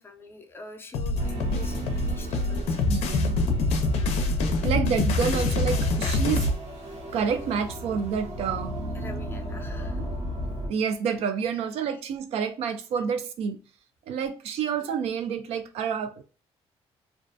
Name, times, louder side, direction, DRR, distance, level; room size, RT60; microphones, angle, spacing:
voice 1, 0.0-2.8 3.9-4.2 8.9-10.0 11.5-12.0, left 3 dB, 20° left, 0.5 m, -45 dB
sound 1, 0.9-6.6, left 3 dB, 80° left, 0.5 m, -25 dB
sound 2, 1.1-10.7, equal, 90° right, 0.9 m, -35 dB
voice 2, 2.9-3.4 4.6-6.5 7.1-8.7 10.0-10.1 10.7-13.6 14.1-16.2, right 7 dB, 70° right, 0.4 m, -28 dB
2.4 x 2.2 x 2.5 m
cardioid pair, 140°, 11 cm